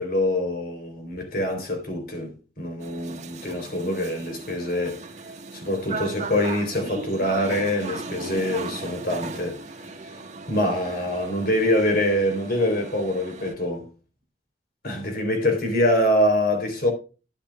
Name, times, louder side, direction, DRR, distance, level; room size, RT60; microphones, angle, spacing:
voice 1, 0.0-5.0 5.5-9.6 10.5-13.9 14.8-16.9, left 1 dB, 60° left, 3.8 m, -25 dB
sound 1, 2.8-13.5, right 3 dB, 40° right, 1.5 m, -37 dB
12.5 x 9.8 x 2.4 m
head